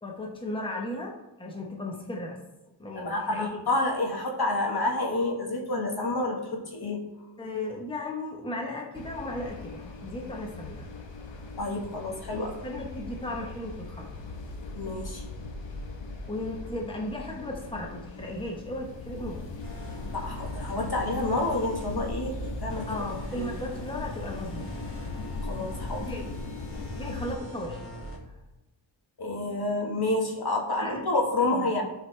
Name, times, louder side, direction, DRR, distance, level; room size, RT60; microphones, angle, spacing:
voice 1, 0.0-2.4 2.8-3.6 7.4-10.9 12.3-14.1 16.3-19.5 22.9-24.9 26.0-26.3 26.9-27.8 30.8-31.7, left 1 dB, 10° left, -1 dB, 1.2 m, -36 dB
voice 2, 2.9-7.0 11.6-12.5 14.7-15.2 20.1-22.3 22.6-22.9 23.3-23.5 25.4-26.0 29.2-31.8, left 2 dB, 50° left, 1 dB, 1.7 m, -29 dB
sound 1, 8.9-27.4, left 3 dB, 70° left, 1.2 m, -39 dB
sound 2, 19.6-28.2, right 1 dB, 30° left, 2.0 m, -42 dB
12.5 x 4.8 x 3.4 m, 0.97 s
wide cardioid pair, 85°, 47 cm